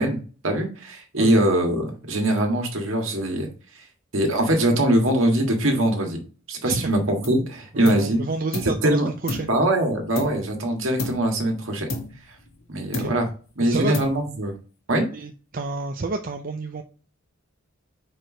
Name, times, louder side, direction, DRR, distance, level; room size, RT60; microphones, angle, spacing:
voice 1, 0.0-3.5 3.8-3.9 4.1-6.2 6.5-8.2 8.6-9.1 9.5-12.0 12.7-13.3 13.6-14.5 14.9-15.1, right 1 dB, 70° right, 3 dB, 1.7 m, -22 dB
sound 1, 7.2-7.5 7.8-8.8 9.3-10.6 11.0-11.4 11.9-12.6 12.9-13.4 13.9-14.5, left 2 dB, 80° left, 2.1 m, -33 dB
voice 2, 7.7-9.5 13.0-13.1 13.6-13.9 15.1-16.8, right 3 dB, 45° right, 4 dB, 0.5 m, -29 dB
4.8 x 4.6 x 5.0 m, 0.37 s
head